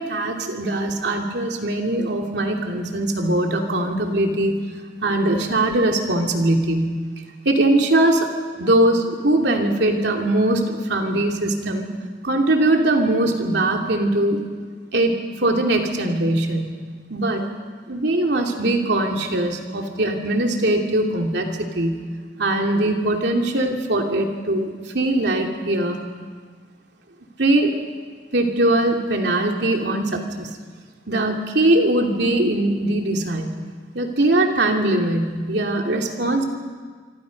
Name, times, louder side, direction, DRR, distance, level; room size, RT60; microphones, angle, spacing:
voice 1, 0.0-4.6 5.0-6.9 7.4-8.3 8.6-11.9 12.2-14.4 14.9-16.8 17.1-17.4 17.9-22.0 22.4-26.0 27.4-27.7 28.3-30.5 31.1-33.6 33.9-36.4, right 1 dB, 70° right, 2 dB, 2.7 m, -21 dB
25.5 x 25.5 x 5.3 m, 1.5 s
head